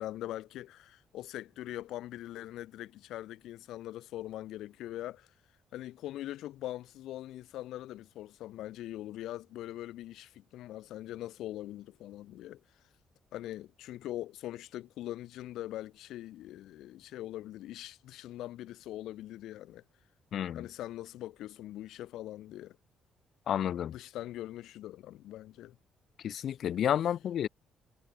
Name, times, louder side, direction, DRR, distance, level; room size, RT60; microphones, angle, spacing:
voice 1, 0.0-5.3 5.7-12.6 13.3-19.8 20.5-22.8 23.9-25.8, left 14 dB, 85° left, 1.0 m, -42 dB
voice 2, 20.3-20.7 23.5-23.9 26.2-27.5, left 10 dB, 65° left, 1.2 m, -30 dB
cardioid pair, 90°, 0 cm